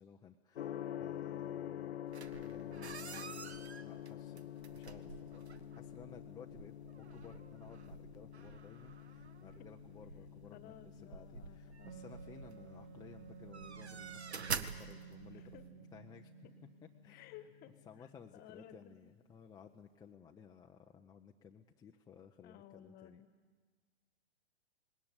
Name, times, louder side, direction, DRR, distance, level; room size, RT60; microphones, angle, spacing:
voice 1, 0.0-2.0 2.4-5.4 5.7-16.3 17.0-17.5 17.9-23.2, left 6 dB, 10° left, 1 dB, 0.7 m, -57 dB
Gong, 0.6-18.4, left 11 dB, 70° left, 0.7 m, -49 dB
sound 1, 2.1-15.7, right 5 dB, 85° right, 1.1 m, -48 dB
voice 2, 10.5-12.0 15.3-15.7 17.0-18.9 22.4-23.3, left 10 dB, 30° left, 12 dB, 1.5 m, -56 dB
Wind instrument woodwind instrument, 11.8-17.2, right 9 dB, 65° right, 1.5 m, -54 dB
20.0 x 17.5 x 9.7 m, 1.5 s
figure-of-eight pair, 110°, 32 cm